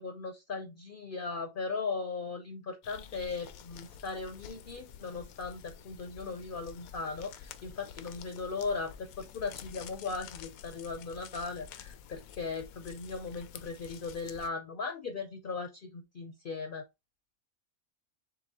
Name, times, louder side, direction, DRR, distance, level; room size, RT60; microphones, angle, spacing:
voice 1, 0.0-16.8, left 4 dB, 50° left, 0.6 m, -38 dB
sound 1, 2.8-14.5, left 8 dB, 85° left, 1.0 m, -49 dB
6.7 x 2.3 x 2.8 m
omnidirectional pair, 1.5 m